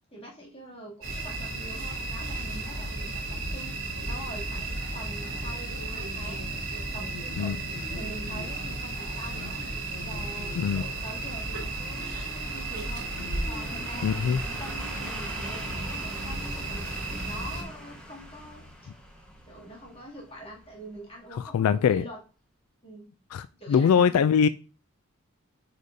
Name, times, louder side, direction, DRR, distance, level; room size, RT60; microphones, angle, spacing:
voice 1, 0.1-6.5 6.9-7.6 7.9-9.6 10.0-13.1 13.4-18.7 19.5-22.2 22.8-23.1 23.6-24.3, equal, 25° left, -4 dB, 2.5 m, -44 dB
sound 1, 1.0-17.6, right 2 dB, 65° right, 2.9 m, -34 dB
sound 2, 6.8-21.4 21.7-21.8, equal, 5° left, 1.2 m, -45 dB
voice 2, 10.5-10.9 14.0-14.4 21.5-22.0 23.3-24.5, left 7 dB, 85° left, 14 dB, 0.3 m, -22 dB
8.3 x 5.1 x 2.7 m, 0.35 s
head